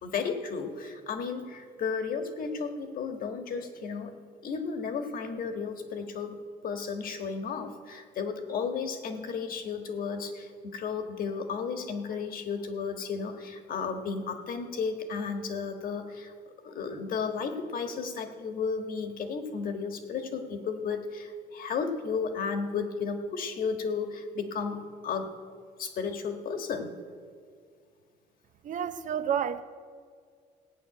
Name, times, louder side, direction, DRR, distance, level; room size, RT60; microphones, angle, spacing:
voice 1, 0.0-4.1 4.4-16.3 16.6-25.3 25.8-26.9, left 5 dB, 55° left, 6 dB, 1.5 m, -33 dB
voice 2, 28.6-29.6, right 8 dB, 50° right, 11 dB, 0.6 m, -30 dB
16.5 x 5.9 x 8.9 m, 2.1 s
cardioid pair, 110°, 17 cm